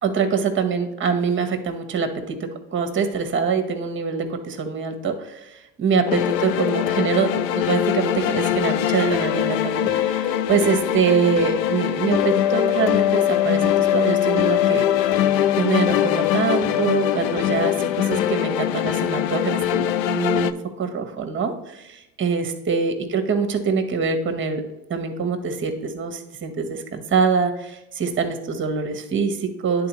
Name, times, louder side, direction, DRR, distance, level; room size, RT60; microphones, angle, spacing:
voice 1, 0.0-2.3 2.7-14.8 15.5-24.6 24.9-29.9, right 5 dB, 25° right, 6 dB, 1.1 m, -24 dB
sound 1, 6.1-20.5, left 11 dB, 80° left, 0.5 m, -22 dB
10.0 x 4.0 x 3.0 m, 0.93 s
hypercardioid pair, 80°, 50 cm